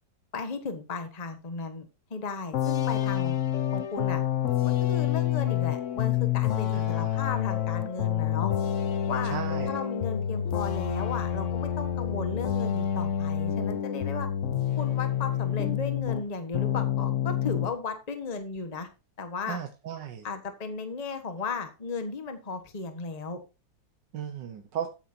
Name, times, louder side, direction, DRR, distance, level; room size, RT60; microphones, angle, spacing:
voice 1, 0.3-3.4 3.7-4.2 4.6-8.5 9.1-9.4 9.7-14.3 14.8-18.9 19.2-19.6 20.2-23.4, left 4 dB, 25° left, 7 dB, 1.3 m, -35 dB
sound 1, 2.5-16.3 16.5-17.7, left 10 dB, 55° left, 0.9 m, -28 dB
voice 2, 6.7-7.2 9.3-9.8 19.5-20.3 24.1-24.9, right 8 dB, 70° right, 6 dB, 1.6 m, -36 dB
14.0 x 8.9 x 2.8 m, 0.29 s
omnidirectional pair, 2.0 m